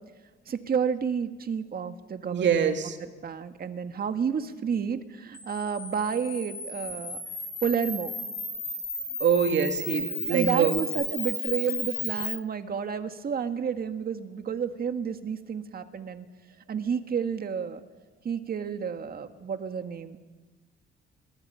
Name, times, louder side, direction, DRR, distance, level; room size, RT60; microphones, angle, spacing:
voice 1, 0.5-2.7 3.2-7.2 7.6-8.1 10.3-16.3 16.7-17.8 18.2-20.2, right 7 dB, 50° right, 8 dB, 1.8 m, -30 dB
voice 2, 2.3-3.0 9.2-10.7, right 7 dB, 65° right, 6 dB, 2.5 m, -24 dB
Camera, 5.3-12.4, left 2 dB, 15° left, 6.5 m, -34 dB
29.5 x 22.5 x 5.7 m, 1.3 s
cardioid pair, 90°, 20 cm